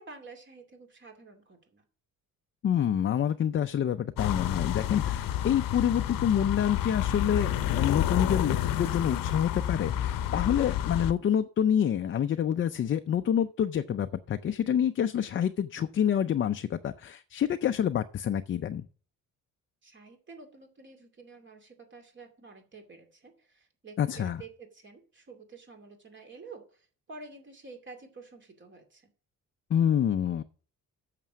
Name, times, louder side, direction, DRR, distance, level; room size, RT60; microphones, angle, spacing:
voice 1, 0.0-1.8 19.8-29.1, right 4 dB, 35° right, 5 dB, 2.5 m, -49 dB
voice 2, 2.6-18.9 24.0-24.4 29.7-30.4, left 9 dB, 35° left, 8 dB, 0.5 m, -27 dB
sound 1, 4.2-11.1, left 11 dB, 75° left, 0.8 m, -29 dB
9.1 x 6.7 x 6.1 m, 0.40 s
cardioid pair, 155°, 34 cm